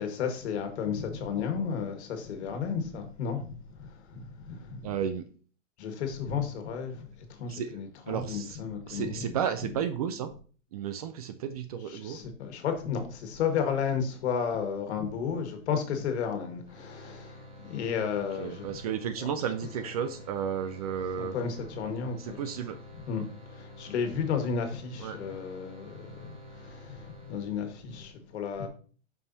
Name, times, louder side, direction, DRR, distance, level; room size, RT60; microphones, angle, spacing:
voice 1, 0.0-4.9 5.8-9.4 11.9-18.8 19.2-19.3 21.2-22.5 23.0-28.7, left 6 dB, 60° left, 1.7 m, -33 dB
voice 2, 4.8-5.3 7.5-7.8 8.1-8.6 8.9-10.3 10.7-12.2 18.4-21.3 22.3-22.8 25.0-25.2, right 8 dB, 30° right, 0.4 m, -33 dB
sound 1, 16.7-28.0, left 1 dB, 15° right, 1.5 m, -49 dB
6.9 x 5.6 x 2.7 m
hypercardioid pair, 140°, 37 cm